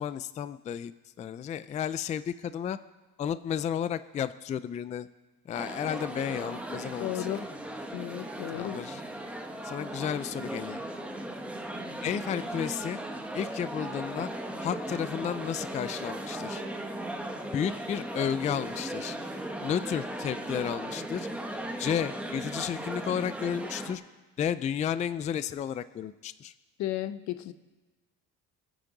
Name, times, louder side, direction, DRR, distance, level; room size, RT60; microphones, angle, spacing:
voice 1, 0.0-2.8 3.2-5.1 5.5-7.5 8.5-9.0 9.6-10.8 12.0-13.0 13.3-14.3 14.6-16.6 17.5-19.2 19.6-21.3 21.8-24.0 24.4-26.5, left 8 dB, 25° left, 14 dB, 0.3 m, -32 dB
sound 1, 5.5-23.9, right 1 dB, 5° right, 1.2 m, -37 dB
voice 2, 7.0-7.4 7.9-8.8 26.8-27.5, left 14 dB, 70° left, 12 dB, 0.8 m, -34 dB
26.0 x 8.9 x 3.9 m, 1.2 s
cardioid pair, 140°, 30 cm